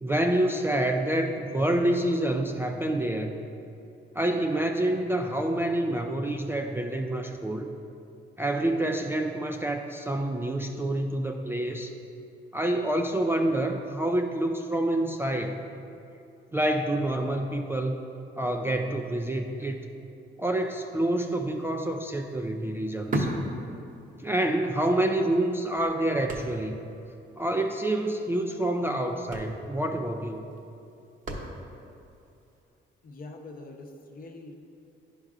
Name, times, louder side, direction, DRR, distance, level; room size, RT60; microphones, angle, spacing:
voice 1, 0.0-3.4 4.1-7.7 8.4-11.9 12.5-15.6 16.5-18.0 18.4-19.8 20.4-23.3 24.2-26.8 27.4-30.4, right 1 dB, 10° right, 3 dB, 0.3 m, -27 dB
sound 1, 21.3-21.5 21.7-24.4 24.7-24.8 25.4-26.9 27.2-27.3 27.6-27.8 28.7-28.8 29.1-31.9 32.5-32.6, right 1 dB, 40° right, 0.9 m, -35 dB
voice 2, 33.0-34.5, left 2 dB, 45° left, 2 dB, 0.8 m, -44 dB
10.5 x 5.4 x 2.4 m, 2.7 s
cardioid pair, 90°, 20 cm